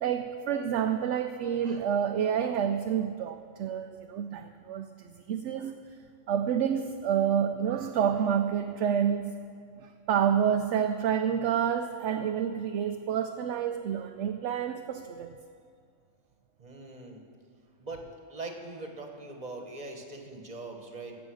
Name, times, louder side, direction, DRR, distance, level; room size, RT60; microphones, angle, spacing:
voice 1, 0.0-5.8 6.3-9.3 9.8-15.4, right 8 dB, 70° right, 7 dB, 0.8 m, -29 dB
voice 2, 16.6-17.2 17.8-18.0 18.3-21.2, right 2 dB, 30° right, 3 dB, 1.5 m, -41 dB
15.5 x 8.0 x 6.3 m, 2.3 s
omnidirectional pair, 1.4 m